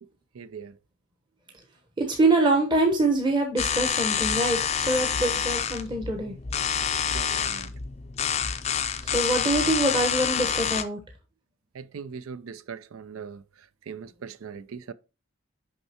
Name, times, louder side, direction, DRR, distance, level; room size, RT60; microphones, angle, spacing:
voice 1, 0.4-0.7 5.2-5.3 7.1-7.7 11.7-13.4 13.9-14.9, right 6 dB, 80° right, 0.4 m, -40 dB
voice 2, 2.0-6.4 9.0-11.0, right 2 dB, 20° right, 0.9 m, -24 dB
sound 1, 3.6-10.8, left 7 dB, 30° left, 0.4 m, -27 dB
6.5 x 5.5 x 2.8 m
head